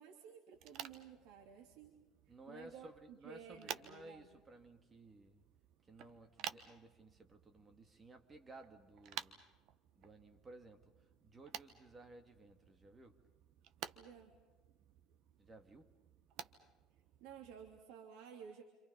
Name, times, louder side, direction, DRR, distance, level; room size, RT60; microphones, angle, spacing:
voice 1, 0.0-1.9 2.3-4.4 13.9-14.3 17.2-18.6, right 7 dB, 75° right, 2 dB, 3.1 m, -54 dB
sound 1, 0.5-17.8, right 10 dB, 55° right, 1.2 m, -53 dB
voice 2, 2.3-5.4 5.9-9.4 9.9-10.9 11.2-13.1 15.4-15.9, right 2 dB, 20° right, 6 dB, 2.2 m, -57 dB
29.0 x 27.0 x 5.5 m, 1.2 s
cardioid pair, 155°, 0 cm